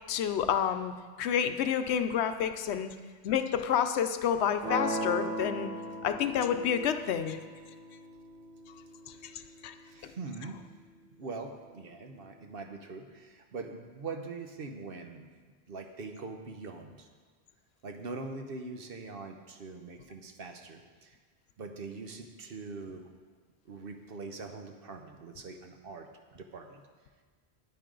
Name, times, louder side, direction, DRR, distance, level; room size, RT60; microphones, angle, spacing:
voice 1, 0.1-0.9 1.2-2.9 3.2-5.7 6.0-7.4 9.6-9.7 10.0-10.1, left 8 dB, 90° left, 9 dB, 0.9 m, -29 dB
sound 1, 4.6-10.7, right 1 dB, 35° right, 1.7 m, -39 dB
voice 2, 9.9-10.6 11.2-15.3 15.7-17.1 17.8-21.2 21.6-23.1 23.6-26.8, right 3 dB, 65° right, 5 dB, 1.0 m, -43 dB
10.0 x 9.2 x 3.8 m, 1.5 s
omnidirectional pair, 1.1 m